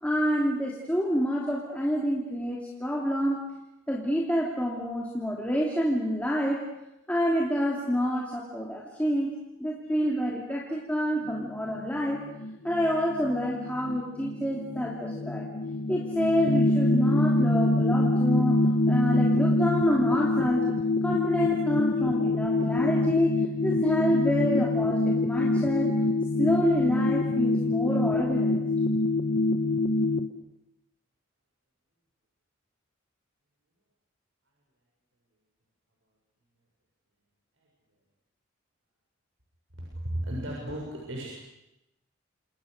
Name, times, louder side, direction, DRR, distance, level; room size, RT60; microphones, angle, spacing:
voice 1, 0.0-3.4 3.9-6.6 7.1-9.3 9.6-12.2 12.6-15.5 15.9-20.7 21.0-26.0 26.4-28.6, equal, 5° left, -3 dB, 2.9 m, -28 dB
sound 1, 11.2-30.3, left 2 dB, 70° left, 1.4 m, -25 dB
voice 2, 39.9-41.3, right 1 dB, 75° right, -3 dB, 7.0 m, -34 dB
30.0 x 27.0 x 6.7 m, 0.90 s
head